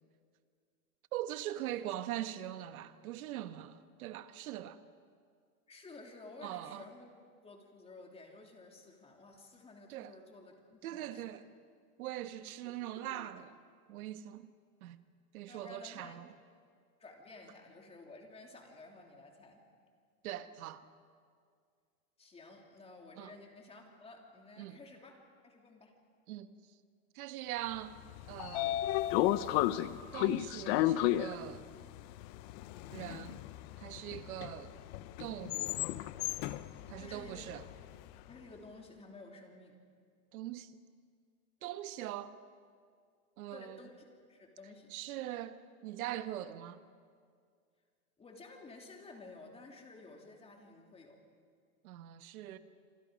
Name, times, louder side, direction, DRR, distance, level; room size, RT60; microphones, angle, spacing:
voice 1, 1.1-4.8 6.4-6.8 9.9-10.1 10.8-11.4 12.0-13.5 13.9-14.5 14.8-15.0 15.3-16.3 20.2-20.8 23.2-23.3 24.6-24.8 26.3-26.5 27.1-28.0 28.3-28.8 30.1-31.6 32.9-33.4 33.8-34.7 35.2-35.8 36.9-37.6 40.3-40.8 41.6-42.4 43.4-43.8 44.9-46.8 51.8-52.6, right 13 dB, 75° right, 1.3 m, -42 dB
voice 2, 5.7-7.1 7.4-11.3 12.6-13.3 15.5-16.2 17.0-19.6 22.2-25.2 25.4-25.9 34.5-34.7 37.0-37.4 38.3-39.8 43.5-43.9 44.3-44.9 48.2-51.2, left 3 dB, 15° left, 3.3 m, -53 dB
Train / Sliding door, 28.0-38.1, left 14 dB, 45° left, 0.8 m, -34 dB
27.5 x 25.5 x 5.2 m
supercardioid pair, 145°, 43 cm